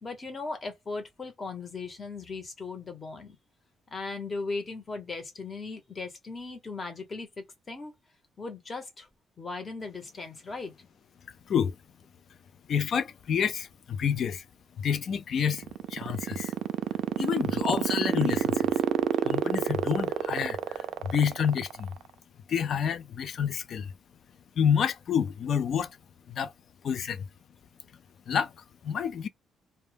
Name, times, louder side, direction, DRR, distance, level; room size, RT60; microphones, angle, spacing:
voice 1, 0.0-3.4 3.9-7.9 8.4-9.1 9.4-10.7, left 3 dB, 25° left, 0.9 m, -38 dB
voice 2, 12.7-14.5 14.8-16.6 17.2-18.8 19.2-21.9 22.5-23.9 24.6-26.0 26.3-26.5 26.8-27.3 28.3-29.3, left 7 dB, 50° left, 0.3 m, -29 dB
sound 1, 15.4-22.0, right 11 dB, 70° right, 0.3 m, -27 dB
2.1 x 2.1 x 3.2 m
cardioid pair, 145°, 0 cm